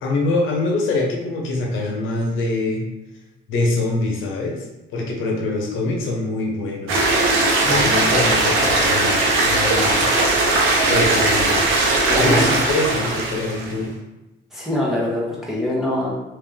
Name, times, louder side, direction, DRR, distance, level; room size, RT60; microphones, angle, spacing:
voice 1, 0.0-2.8 3.5-4.6 4.9-7.0 7.7-10.1 10.9-11.8 12.2-13.9, left 2 dB, 85° left, 0 dB, 0.9 m, -24 dB
sound 1, 6.9-13.7, right 2 dB, 90° right, 0.8 m, -18 dB
voice 2, 7.6-8.2 12.0-12.6 14.5-16.1, left 1 dB, ahead, -6 dB, 1.4 m, -24 dB
3.3 x 3.0 x 3.4 m, 1.0 s
cardioid pair, 90°, 20 cm